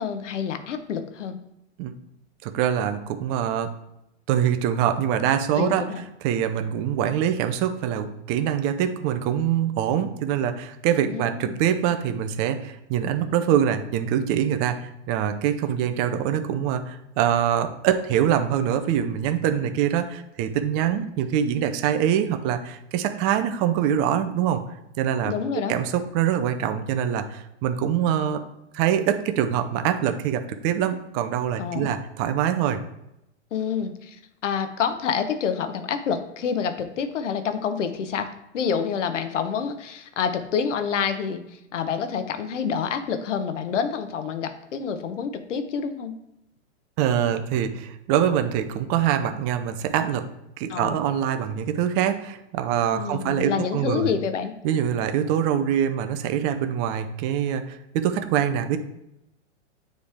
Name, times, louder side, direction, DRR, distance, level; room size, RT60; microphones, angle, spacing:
voice 1, 0.0-1.4 5.6-6.0 11.0-11.6 25.2-25.7 31.6-31.9 33.5-38.3 38.5-41.4 41.7-46.1 50.7-51.0 52.9-54.5, left 7 dB, 80° left, 9 dB, 1.0 m, -28 dB
voice 2, 2.4-3.7 4.3-5.8 6.2-24.6 25.0-25.3 25.7-28.4 28.7-32.8 47.0-50.3 50.6-54.1 54.6-58.8, right 9 dB, 25° right, 8 dB, 0.4 m, -24 dB
9.4 x 3.3 x 3.5 m, 0.86 s
hypercardioid pair, 130°, 36 cm